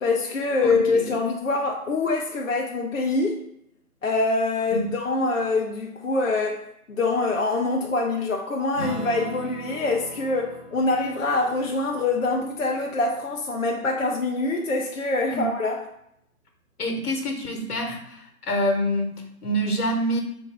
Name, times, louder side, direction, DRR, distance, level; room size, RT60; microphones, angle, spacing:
voice 1, 0.0-3.4 4.0-15.8, left 3 dB, 60° left, 0 dB, 0.5 m, -25 dB
voice 2, 0.6-1.0 4.7-4.9 15.3-15.5 16.8-20.2, equal, 80° left, 3 dB, 1.1 m, -26 dB
Acoustic guitar / Strum, 8.7-13.6, right 2 dB, 5° right, 1.1 m, -39 dB
3.1 x 2.6 x 4.3 m, 0.76 s
hypercardioid pair, 175°, 45 cm